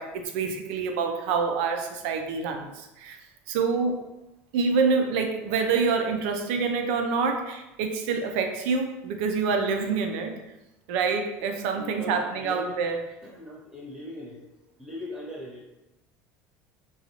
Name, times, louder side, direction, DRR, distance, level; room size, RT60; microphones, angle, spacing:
voice 1, 0.0-3.2 3.5-4.0 4.5-10.4 10.9-13.0, right 5 dB, 80° right, 5 dB, 0.5 m, -26 dB
voice 2, 11.7-12.8 13.2-14.5 14.8-15.6, left 1 dB, 10° right, -4 dB, 0.9 m, -39 dB
3.9 x 2.3 x 2.9 m, 0.96 s
cardioid pair, 155°, 6 cm